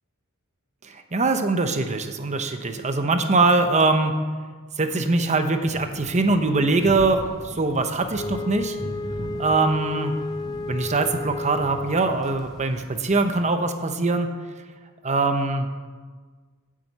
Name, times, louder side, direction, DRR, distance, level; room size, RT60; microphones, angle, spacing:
voice 1, 0.8-4.1 4.8-8.8 9.4-10.1 10.7-14.3 15.0-15.7, right 3 dB, 30° right, 7 dB, 0.9 m, -22 dB
sound 1, 5.6-13.4, equal, ahead, 2.8 m, -39 dB
Wind instrument woodwind instrument, 8.1-12.3, left 3 dB, 20° left, 0.6 m, -33 dB
9.6 x 7.7 x 8.0 m, 1.5 s
head